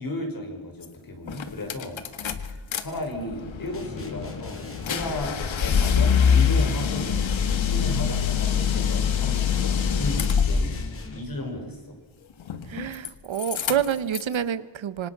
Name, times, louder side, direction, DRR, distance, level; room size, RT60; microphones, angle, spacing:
voice 1, 0.0-2.0 2.3-7.2 7.6-10.8 11.1-11.9, left 1 dB, 50° left, 3 dB, 5.9 m, -34 dB
sound 1, 0.8-0.9 1.3-2.8 3.2-10.9 12.4-13.1 13.4-14.3, left 7 dB, 85° left, 1.7 m, -24 dB
sound 2, 3.7-11.4, left 3 dB, 30° left, 3.0 m, -40 dB
voice 2, 12.7-15.1, right 9 dB, 85° right, 15 dB, 1.2 m, -28 dB
26.5 x 26.0 x 6.1 m, 1.3 s
wide cardioid pair, 170°, 45 cm